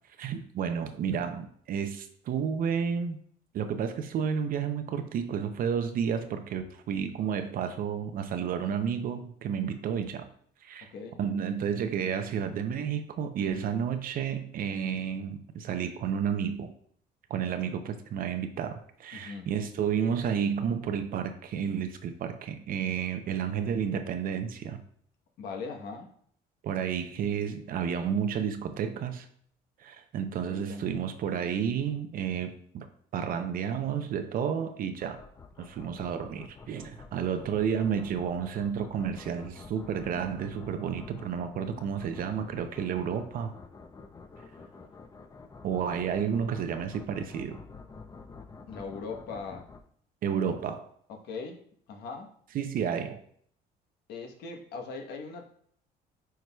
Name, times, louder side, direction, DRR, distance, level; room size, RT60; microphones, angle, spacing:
voice 1, 0.2-3.2 3.5-10.3 10.6-10.9 11.2-16.7 17.3-24.8 26.6-29.3 29.8-32.9 33.1-35.2 35.6-43.5 45.6-47.6 50.2-50.9 52.5-53.2, right 7 dB, 60° right, 8 dB, 0.6 m, -31 dB
voice 2, 10.8-11.2 19.1-19.5 25.4-26.1 30.5-31.1 35.8-36.2 48.7-49.7 51.1-51.6 51.9-52.3 54.1-55.5, left 4 dB, 75° left, 3 dB, 1.1 m, -40 dB
sound 1, 35.0-49.8, left 4 dB, 20° left, 0.5 m, -48 dB
9.2 x 4.7 x 2.3 m, 0.63 s
cardioid pair, 110°, 17 cm